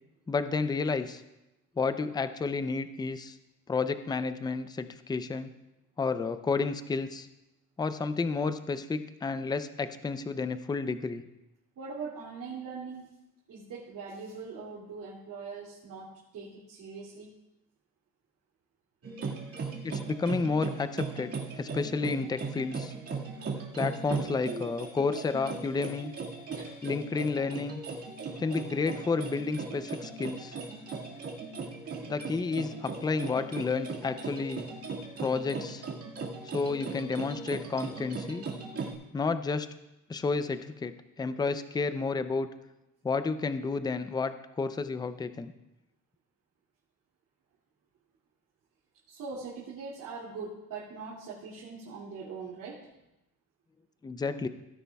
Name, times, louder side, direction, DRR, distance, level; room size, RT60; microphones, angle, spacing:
voice 1, 0.3-1.2 1.8-3.4 3.7-5.5 6.0-7.3 7.8-11.2 19.8-22.9 23.7-26.1 26.8-27.8 28.4-30.6 32.1-34.7 35.2-35.8 36.4-38.4 39.1-39.7 40.1-42.5 43.0-45.5 54.0-54.5, left 4 dB, 10° left, 11 dB, 0.5 m, -31 dB
voice 2, 11.8-13.1 13.5-17.3 26.5-26.7 49.1-52.9, right 4 dB, 65° right, -6 dB, 2.6 m, -41 dB
sound 1, 19.0-38.9, right 4 dB, 45° right, 2.0 m, -38 dB
17.0 x 9.7 x 2.3 m, 0.94 s
cardioid pair, 110°, 34 cm